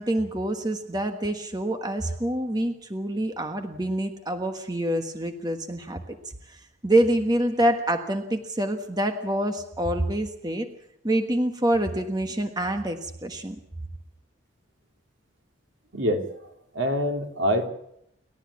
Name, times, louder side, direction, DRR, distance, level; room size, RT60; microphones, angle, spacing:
voice 1, 0.0-6.2 6.5-10.7 11.0-13.6, right 1 dB, 20° right, 6 dB, 1.4 m, -26 dB
voice 2, 15.9-16.3 16.7-17.7, equal, 75° right, 4 dB, 3.0 m, -25 dB
29.0 x 13.0 x 8.5 m, 0.76 s
head